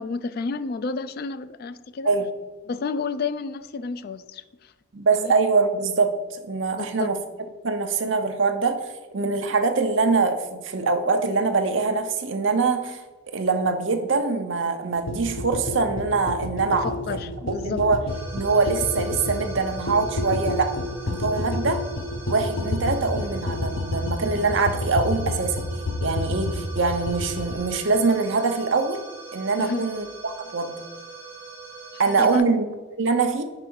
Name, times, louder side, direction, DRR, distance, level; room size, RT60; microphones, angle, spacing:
voice 1, 0.0-2.1 2.7-4.7 5.1-5.3 6.8-7.1 16.7-17.8 29.6-29.8 32.2-32.4, left 4 dB, 45° left, 12 dB, 0.3 m, -31 dB
voice 2, 4.9-7.2 7.6-8.9 9.1-13.0 13.3-17.2 17.6-18.0 18.3-20.8 21.1-21.8 22.3-25.6 26.0-29.0 29.3-30.8 32.0-32.6 32.9-33.4, right 4 dB, 60° right, 7 dB, 0.7 m, -23 dB
sound 1, 15.1-27.5, left 2 dB, 65° left, 0.7 m, -29 dB
sound 2, 18.1-32.4, right 4 dB, 10° right, 1.3 m, -41 dB
4.9 x 4.5 x 6.1 m, 1.3 s
head